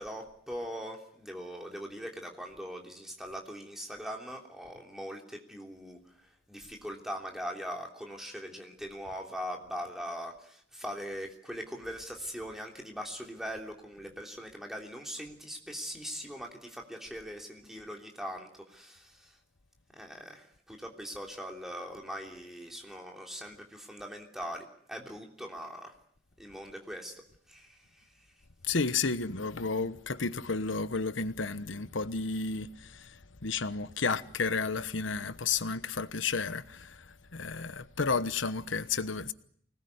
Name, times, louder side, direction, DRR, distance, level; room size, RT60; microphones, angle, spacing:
voice 1, 0.0-19.4 19.9-25.9 26.4-28.3, equal, ahead, 3.2 m, -41 dB
voice 2, 28.6-39.3, left 4 dB, 85° left, 1.1 m, -32 dB
25.0 x 19.5 x 9.6 m
head